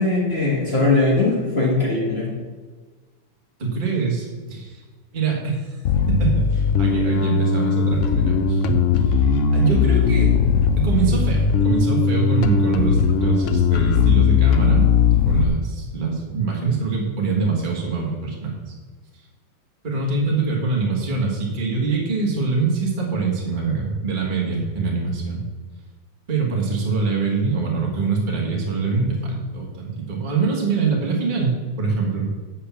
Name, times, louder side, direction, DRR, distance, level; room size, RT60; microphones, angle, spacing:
voice 1, 0.0-2.3, left 2 dB, 35° left, -4 dB, 1.8 m, -20 dB
voice 2, 3.6-4.8 5.1-5.8 6.1-9.2 9.5-10.3 10.8-14.9 15.3-18.7 19.8-25.4 26.3-32.3, right 4 dB, 25° right, -2 dB, 1.7 m, -24 dB
Bass guitar, 5.8-15.4, left 6 dB, 75° left, 0.7 m, -18 dB
8.3 x 5.8 x 7.1 m, 1.4 s
omnidirectional pair, 2.1 m